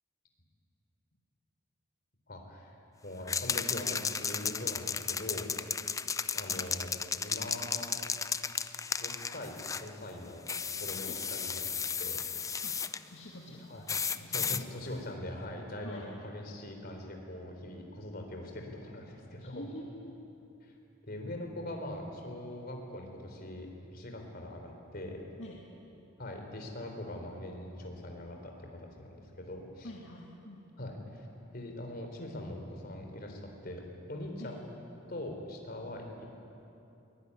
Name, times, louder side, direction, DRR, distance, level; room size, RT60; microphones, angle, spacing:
voice 1, 2.3-2.7 3.0-5.8 6.3-8.0 9.0-10.4 10.8-11.7 12.0-12.2 13.7-13.8 14.3-19.6 20.6-20.7 21.1-25.2 26.2-29.9 30.8-31.3 31.5-34.6 35.1-36.2, left 1 dB, 45° left, 2 dB, 3.9 m, -42 dB
sound 1, 3.3-9.9 10.5-13.0 13.9-14.6, left 6 dB, 15° left, 0.5 m, -34 dB
voice 2, 13.1-14.7 15.8-16.1 19.4-20.2 25.4-25.6 29.8-30.9 34.4-34.5, left 1 dB, 65° left, -3 dB, 2.3 m, -47 dB
22.5 x 19.5 x 9.7 m, 2.8 s
head